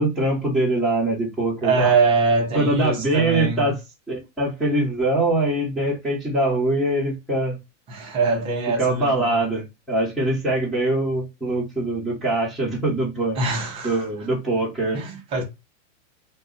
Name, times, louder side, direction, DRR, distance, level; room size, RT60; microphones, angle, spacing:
voice 1, 0.0-1.9 2.5-3.7 4.1-7.6 8.8-13.4 13.8-15.0, right 2 dB, ahead, 0.8 m, -23 dB
voice 2, 1.6-3.7 7.9-9.4 13.4-14.3 14.9-15.4, right 4 dB, 15° right, 0.4 m, -23 dB
2.3 x 2.0 x 3.7 m
supercardioid pair, 150°, 39 cm